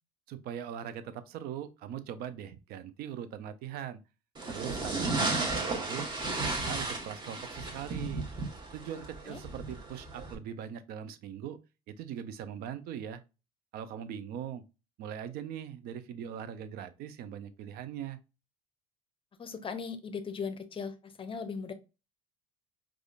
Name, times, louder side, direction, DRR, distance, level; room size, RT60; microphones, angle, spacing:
voice 1, 0.3-4.0 4.5-6.1 6.4-8.2 8.7-11.6 11.9-13.2 13.7-14.6 15.0-18.2, right 9 dB, 55° right, 0.5 m, -41 dB
sound 1, 4.3-10.3, right 3 dB, 25° right, 1.1 m, -34 dB
voice 2, 8.9-9.4 19.4-21.7, left 5 dB, 30° left, 0.6 m, -39 dB
4.9 x 2.4 x 2.4 m
hypercardioid pair, 65°, 19 cm